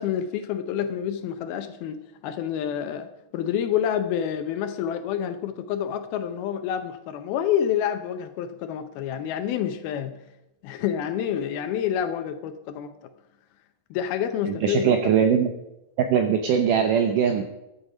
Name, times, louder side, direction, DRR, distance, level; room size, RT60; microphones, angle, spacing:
voice 1, 0.0-10.2 10.6-12.9 13.9-14.9, left 9 dB, 75° left, 9 dB, 2.4 m, -28 dB
voice 2, 14.5-15.5 16.0-17.4, right 7 dB, 75° right, 6 dB, 1.9 m, -21 dB
14.0 x 9.8 x 5.0 m, 0.90 s
omnidirectional pair, 4.8 m